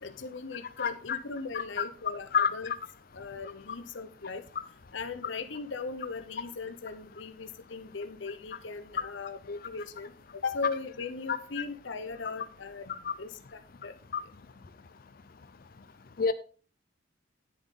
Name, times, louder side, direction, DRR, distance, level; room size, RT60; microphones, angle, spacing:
voice 1, 0.0-2.7 3.1-4.4 4.9-13.9, left 4 dB, 65° left, 0.9 m, -39 dB
voice 2, 0.8-1.2 1.5-1.8 2.3-2.7 13.0-13.1 14.1-14.2 16.2-16.3, left 6 dB, 45° left, 0.5 m, -28 dB
10.0 x 7.2 x 3.8 m
head